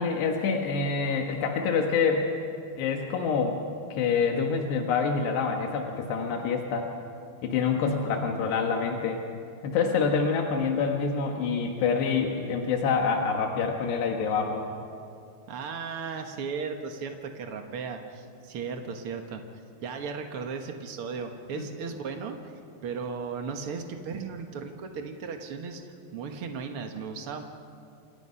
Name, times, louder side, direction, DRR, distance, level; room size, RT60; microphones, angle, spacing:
voice 1, 0.0-2.3 2.8-3.6 3.9-6.9 7.4-9.2 9.6-14.6 21.6-21.7, left 5 dB, 85° left, 2 dB, 3.7 m, -26 dB
voice 2, 15.5-19.4 19.8-22.5 22.8-25.8 26.1-27.4, right 5 dB, 80° right, 4 dB, 1.2 m, -36 dB
28.0 x 28.0 x 5.7 m, 2.5 s
omnidirectional pair, 4.7 m